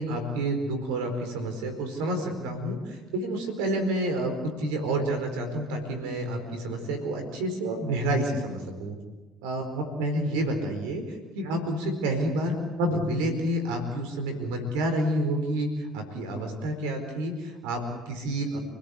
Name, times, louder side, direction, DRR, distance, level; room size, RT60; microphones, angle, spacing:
voice 1, 0.0-4.3 4.6-8.9 9.4-18.6, right 1 dB, 80° right, 5 dB, 4.5 m, -29 dB
29.5 x 17.5 x 8.4 m, 1.2 s
hypercardioid pair, 65°, 0 cm